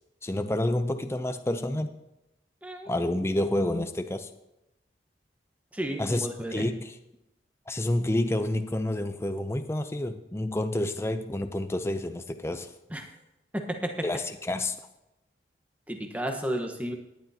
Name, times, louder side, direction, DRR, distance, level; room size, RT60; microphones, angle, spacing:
voice 1, 0.2-1.9 2.9-4.3 6.0-7.0 7.7-12.7 14.0-14.8, left 1 dB, 15° left, 0.5 m, -29 dB
voice 2, 5.7-6.6 12.9-13.0 13.5-14.1 15.9-16.9, right 1 dB, 10° right, 1.1 m, -32 dB
18.0 x 10.5 x 2.8 m
head